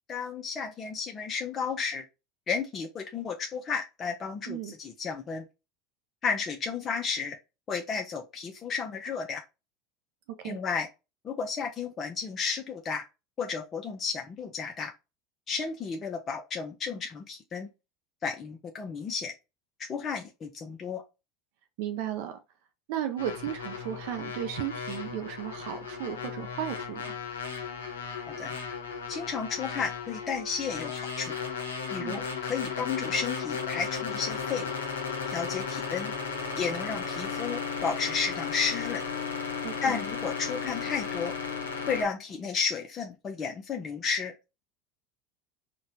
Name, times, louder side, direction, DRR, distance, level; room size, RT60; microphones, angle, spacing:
voice 1, 0.1-2.0 2.5-5.4 6.2-7.4 7.7-9.4 10.4-10.9 11.2-13.0 13.4-14.9 15.5-17.7 18.2-19.3 19.8-21.0 28.3-28.5 29.1-31.4 31.9-34.7 35.3-36.1 36.6-39.0 39.8-41.3 41.9-44.3, left 5 dB, 35° left, 0.5 m, -33 dB
voice 2, 21.8-22.4 22.9-27.1 32.0-32.2 39.6-40.0, right 10 dB, 65° right, 0.4 m, -35 dB
sound 1, 23.2-42.0, left 5 dB, 90° left, 0.6 m, -35 dB
4.0 x 2.2 x 2.6 m
hypercardioid pair, 85°, 0 cm